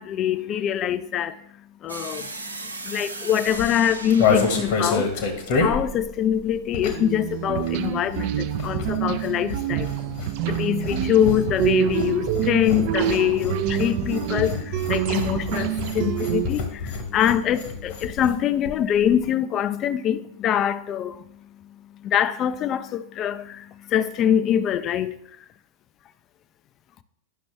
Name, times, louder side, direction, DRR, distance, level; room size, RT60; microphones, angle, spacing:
voice 1, 0.0-1.4 1.8-2.3 2.8-5.3 5.5-9.9 10.5-21.2 22.0-25.2, left 10 dB, 30° left, 0.4 m, -24 dB
sound 1, 1.9-6.7, right 3 dB, 80° right, 0.8 m, -38 dB
sound 2, 3.5-7.2 7.5-18.4 18.7-18.8 19.0-19.3, left 5 dB, 50° left, 1.3 m, -28 dB
sound 3, 6.8-16.5, right 11 dB, 45° right, 0.4 m, -27 dB
10.0 x 6.0 x 3.2 m
figure-of-eight pair, 90°, 0 cm